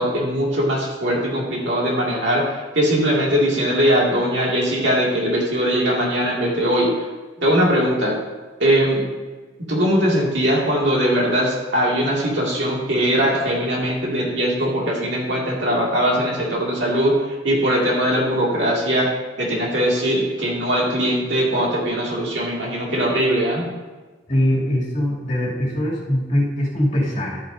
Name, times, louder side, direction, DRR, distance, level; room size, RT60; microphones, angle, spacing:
voice 1, 0.0-6.9 7.4-8.2 8.6-9.0 9.7-17.1 17.4-19.1 19.4-23.7, equal, 70° right, -3 dB, 2.5 m, -20 dB
voice 2, 24.3-27.4, equal, 40° left, -6 dB, 3.0 m, -22 dB
12.0 x 9.1 x 2.8 m, 1.3 s
head